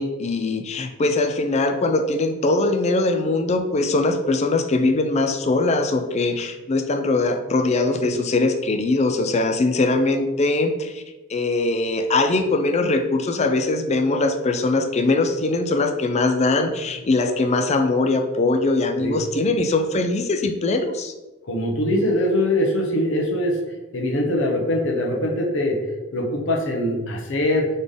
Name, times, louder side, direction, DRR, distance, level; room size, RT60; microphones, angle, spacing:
voice 1, 0.0-11.0 11.3-21.1, left 2 dB, 30° left, 6 dB, 0.4 m, -21 dB
voice 2, 21.4-23.6 23.9-25.8 26.1-27.7, left 1 dB, 65° left, 1 dB, 0.9 m, -22 dB
3.9 x 3.5 x 3.6 m, 1.1 s
head